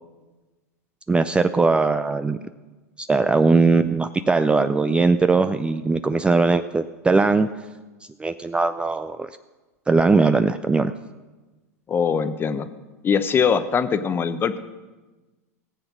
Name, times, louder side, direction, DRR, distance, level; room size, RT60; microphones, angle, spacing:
voice 1, 1.1-2.4 3.0-7.5 8.2-9.3 9.9-10.9, right 3 dB, 10° right, 11 dB, 0.4 m, -20 dB
voice 2, 11.9-12.7 13.0-14.6, left 6 dB, 25° left, 11 dB, 0.9 m, -22 dB
18.0 x 7.8 x 6.1 m, 1.2 s
hypercardioid pair, 100°, 8 cm